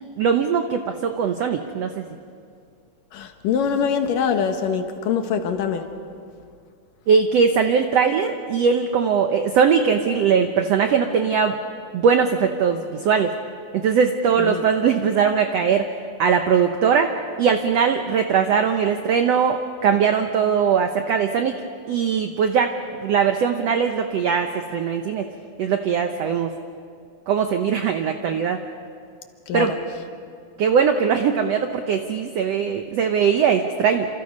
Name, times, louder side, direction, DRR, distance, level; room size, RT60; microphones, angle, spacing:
voice 1, 0.2-2.0 7.1-11.6 11.9-13.4 13.7-15.9 16.2-17.1 17.4-21.6 21.9-22.7 23.0-25.3 25.6-26.5 27.3-28.6 29.5-29.7 30.6-34.1, right 6 dB, 80° right, 6 dB, 1.4 m, -20 dB
voice 2, 3.1-5.9 14.4-14.6 29.5-29.8, left 7 dB, 70° left, 6 dB, 2.9 m, -24 dB
28.5 x 27.0 x 5.4 m, 2.3 s
omnidirectional pair, 4.1 m